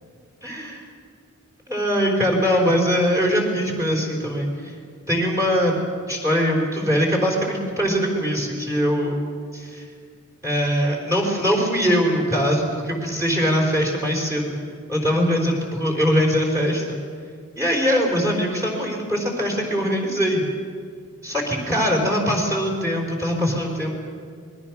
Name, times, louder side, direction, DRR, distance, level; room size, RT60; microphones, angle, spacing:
voice 1, 0.4-0.8 1.7-4.5 5.1-5.8 6.1-9.2 9.5-9.8 10.4-14.6 14.9-17.0 17.6-20.5 21.2-23.9, equal, 15° right, -1 dB, 4.0 m, -22 dB
27.5 x 21.0 x 6.1 m, 2.1 s
head